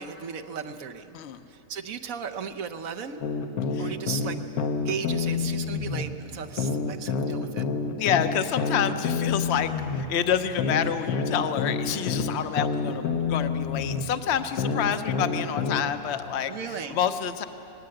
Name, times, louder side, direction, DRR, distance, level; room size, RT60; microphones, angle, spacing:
voice 1, 0.0-1.2 1.5-3.2 3.8-4.4 4.8-7.6 16.5-17.0, right 6 dB, 70° right, 6 dB, 1.3 m, -36 dB
sound 1, 3.2-6.1 6.6-10.1 10.6-14.1 14.6-15.8, left 5 dB, 80° left, 1.4 m, -28 dB
voice 2, 8.0-17.4, left 8 dB, 55° left, 9 dB, 1.0 m, -28 dB
19.5 x 18.5 x 7.8 m, 3.0 s
omnidirectional pair, 1.5 m